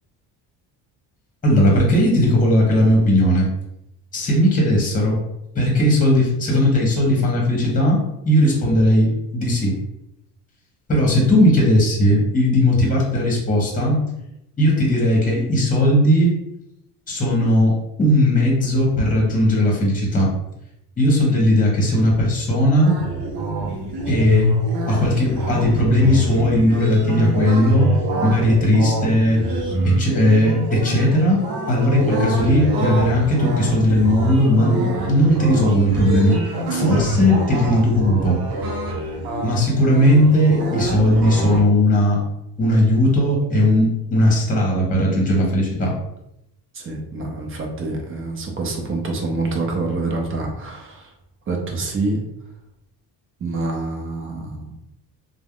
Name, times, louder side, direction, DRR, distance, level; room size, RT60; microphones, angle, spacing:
voice 1, 1.4-3.5 4.1-5.2 5.5-8.0 8.2-9.8 10.9-14.0 14.6-16.3 17.1-20.3 21.0-22.9 24.1-24.5 24.9-27.9 28.2-29.4 29.8-31.4 31.7-36.4 36.7-38.4 39.4-42.2 42.6-45.9, left 1 dB, 20° left, -2 dB, 0.9 m, -17 dB
sound 1, 22.8-41.6, right 1 dB, 60° right, 0.8 m, -25 dB
voice 2, 46.7-51.1 51.5-52.2 53.4-54.7, right 3 dB, 30° right, 1 dB, 0.6 m, -26 dB
3.3 x 2.1 x 2.3 m, 0.83 s
cardioid pair, 115°, 41 cm